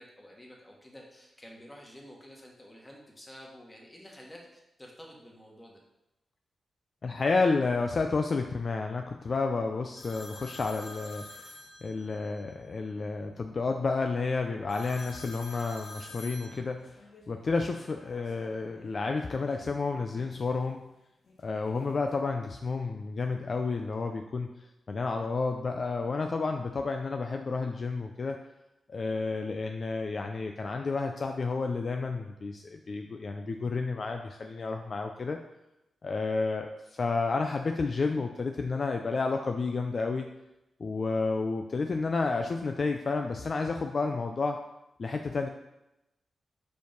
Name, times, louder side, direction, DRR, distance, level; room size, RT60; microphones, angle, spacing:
voice 1, 0.0-5.8, equal, 15° left, -1 dB, 1.7 m, -50 dB
voice 2, 7.0-11.5 11.8-17.0 17.3-20.9 21.4-24.5 24.9-28.4 28.9-35.4 36.0-40.3 40.8-44.6 45.0-45.5, left 4 dB, 50° left, 4 dB, 0.4 m, -31 dB
sound 1, 10.0-12.4 14.7-18.9 19.3-20.4 21.3-22.2, left 2 dB, 65° left, 1.3 m, -49 dB
5.1 x 4.6 x 5.2 m, 0.91 s
cardioid pair, 75°, 0 cm